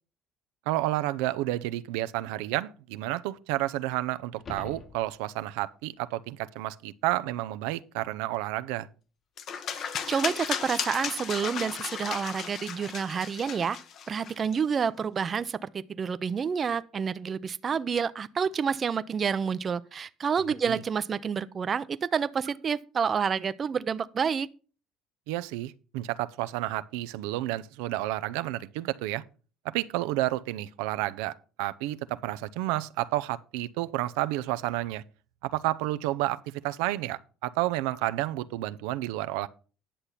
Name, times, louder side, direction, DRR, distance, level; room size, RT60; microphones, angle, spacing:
voice 1, 0.7-8.9 20.7-20.8 25.3-29.2 29.6-31.3 31.6-35.0 35.4-39.5, right 16 dB, 90° right, 0.5 m, -30 dB
sound 1, 4.3-5.6 10.4-10.5, left 3 dB, 40° left, 1.5 m, -45 dB
sound 2, 9.4-14.6, left 7 dB, 55° left, 1.2 m, -35 dB
voice 2, 9.7-13.8 14.1-24.5, right 6 dB, 35° right, 0.6 m, -29 dB
10.0 x 6.7 x 5.7 m
supercardioid pair, 100°, 0 cm